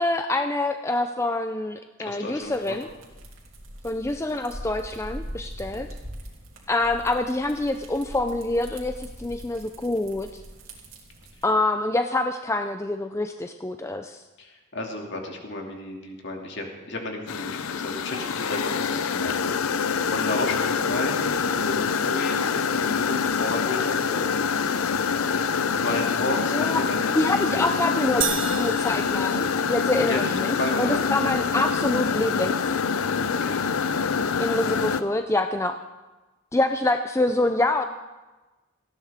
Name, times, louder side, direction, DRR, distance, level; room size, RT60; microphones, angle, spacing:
voice 1, 0.0-2.9 3.8-5.9 6.7-10.4 11.4-14.2 26.5-26.8 27.1-28.2 28.6-32.7 34.4-35.8 36.5-37.8, left 2 dB, 15° left, 7 dB, 0.5 m, -26 dB
voice 2, 2.0-2.8 5.7-5.9 14.4-24.9 25.7-27.7 29.9-31.0 33.3-33.6, left 2 dB, 55° left, 1 dB, 2.5 m, -33 dB
sound 1, 2.4-11.4, equal, 75° right, 2.8 m, -42 dB
sound 2, 17.3-35.0, left 6 dB, 80° left, 0.6 m, -25 dB
sound 3, 28.2-30.1, right 11 dB, 60° right, 0.7 m, -32 dB
18.5 x 15.0 x 3.6 m, 1.1 s
head